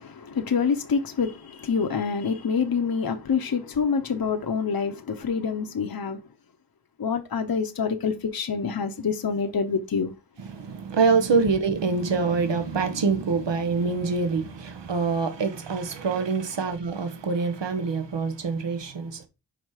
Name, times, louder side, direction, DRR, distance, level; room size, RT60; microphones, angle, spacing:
voice 1, 0.0-6.2 7.0-10.1, left 5 dB, 55° left, 0.9 m, -26 dB
voice 2, 10.4-19.3, right 4 dB, 80° right, 1.1 m, -25 dB
5.1 x 5.0 x 4.8 m
wide cardioid pair, 65°, 42 cm